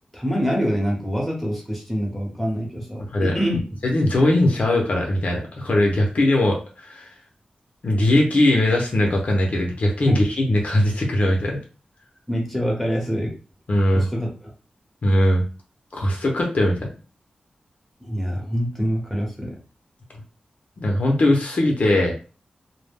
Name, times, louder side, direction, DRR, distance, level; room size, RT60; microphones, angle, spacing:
voice 1, 0.1-3.6 10.0-10.2 12.3-13.4 13.9-14.3 18.0-19.6, equal, ahead, -2 dB, 0.9 m, -25 dB
voice 2, 3.8-7.1 7.8-11.6 13.7-14.1 15.0-15.4 15.9-16.9 20.8-22.1, left 1 dB, 60° left, 0 dB, 0.6 m, -20 dB
2.2 x 2.0 x 3.4 m, 0.36 s
wide cardioid pair, 115°, 3 cm